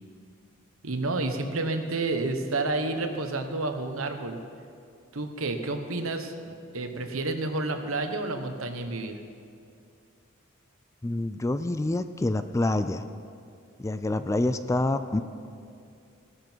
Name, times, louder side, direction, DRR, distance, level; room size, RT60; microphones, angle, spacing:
voice 1, 0.8-4.4 5.1-9.1, right 2 dB, 80° right, 6 dB, 1.2 m, -30 dB
voice 2, 11.0-13.0 13.8-15.2, left 2 dB, 15° left, 11 dB, 0.3 m, -27 dB
17.5 x 11.0 x 4.6 m, 2.5 s
head